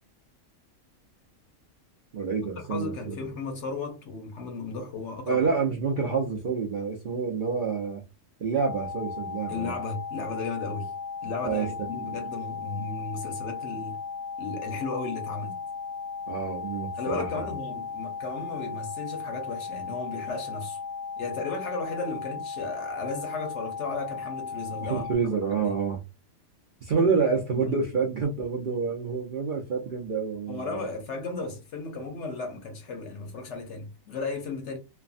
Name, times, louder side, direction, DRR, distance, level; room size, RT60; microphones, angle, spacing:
voice 1, 2.1-3.3 5.3-8.0 8.4-9.7 11.4-12.2 16.3-17.5 24.8-26.0 26.8-30.8, right 5 dB, 55° right, 0.5 m, -28 dB
voice 2, 2.7-5.4 9.5-10.9 11.2-14.0 14.4-15.6 17.0-20.8 21.2-25.1 25.5-25.7 26.9-27.1 27.5-27.8 30.5-34.8, left 4 dB, 60° left, 1.0 m, -35 dB
sound 1, 8.6-25.1, left 5 dB, 30° right, 1.2 m, -36 dB
3.3 x 2.0 x 2.4 m
omnidirectional pair, 1.4 m